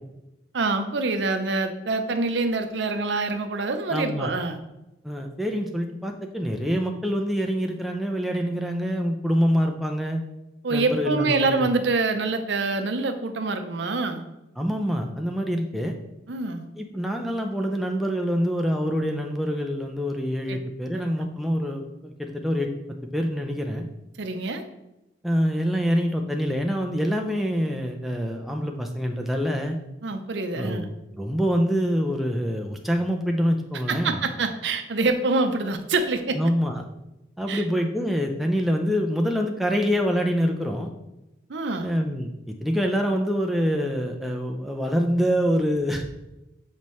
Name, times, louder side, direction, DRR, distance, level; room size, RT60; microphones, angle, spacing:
voice 1, 0.5-4.6 10.6-14.2 16.3-16.7 20.5-20.6 20.9-21.3 24.2-24.6 30.0-30.9 33.9-36.4 37.5-37.6 41.5-42.0, right 3 dB, 80° right, 7 dB, 0.6 m, -26 dB
voice 2, 3.9-4.3 5.0-10.2 10.7-11.7 14.6-15.9 16.8-22.7 23.1-23.8 25.2-29.8 30.5-34.2 36.3-36.8 37.4-40.9 41.8-46.1, equal, ahead, 2 dB, 0.4 m, -25 dB
7.3 x 4.2 x 3.1 m, 0.94 s
head